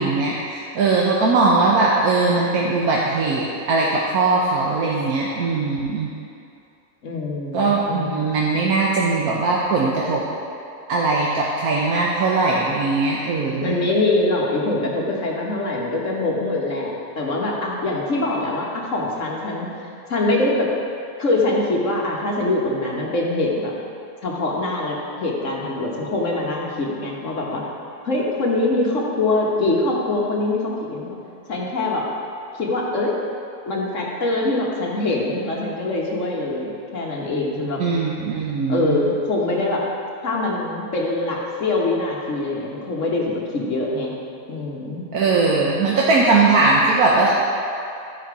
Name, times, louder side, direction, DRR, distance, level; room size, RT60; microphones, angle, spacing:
voice 1, 0.0-6.1 7.5-10.2 10.9-13.8 37.8-39.0 45.1-47.3, right 3 dB, 70° right, -4 dB, 1.3 m, -20 dB
voice 2, 7.0-8.2 13.6-19.7 20.1-20.7 21.2-23.7 24.2-27.6 28.0-31.2 31.5-32.0 32.6-33.1 33.7-37.8 38.7-39.9 40.2-44.1 44.5-45.0, left 2 dB, 50° left, -3 dB, 1.5 m, -23 dB
13.0 x 5.0 x 4.8 m, 2.6 s
omnidirectional pair, 1.7 m